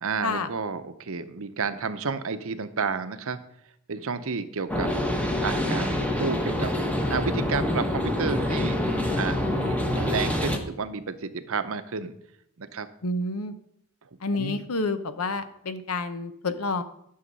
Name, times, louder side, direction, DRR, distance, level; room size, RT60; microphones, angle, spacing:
voice 1, 0.0-3.4 3.9-5.0 5.4-6.7 7.1-8.8 9.2-12.1 12.6-12.9 14.3-14.6, right 5 dB, 65° right, 11 dB, 0.8 m, -31 dB
sound 1, 4.7-10.6, left 1 dB, 5° left, 1.0 m, -26 dB
voice 2, 13.0-13.5 14.2-16.8, left 3 dB, 75° left, 11 dB, 0.9 m, -29 dB
11.5 x 6.6 x 5.4 m, 0.75 s
head